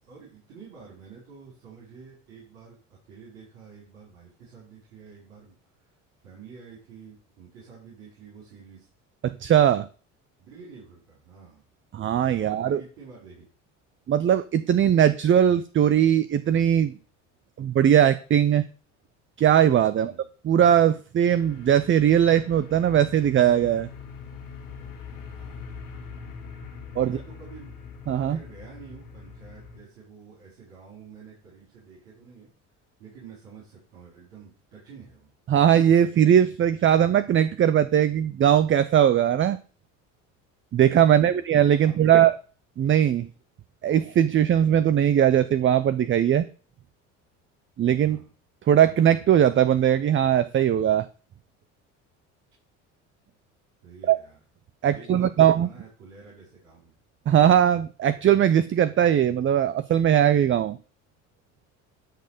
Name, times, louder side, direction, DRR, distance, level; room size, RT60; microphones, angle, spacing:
voice 1, 0.0-8.9 10.4-11.6 12.4-13.4 19.9-20.3 25.2-25.8 27.0-27.7 28.2-32.5 33.0-35.3 41.1-41.4 41.8-42.3 48.0-48.3 53.8-54.4 54.9-56.9, right 5 dB, 80° right, -6 dB, 4.9 m, -48 dB
voice 2, 9.2-9.9 11.9-12.8 14.1-16.9 17.6-18.6 19.4-20.1 20.4-23.9 27.0-27.2 28.1-28.4 35.5-39.6 40.7-42.3 42.8-43.3 43.8-46.4 47.8-48.2 48.7-51.1 54.1-54.2 54.8-55.7 57.3-60.8, right 10 dB, 30° right, 14 dB, 0.6 m, -20 dB
sound 1, 21.3-29.8, left 5 dB, 85° left, 2.9 m, -42 dB
12.0 x 4.3 x 6.6 m, 0.40 s
hypercardioid pair, 75°, 37 cm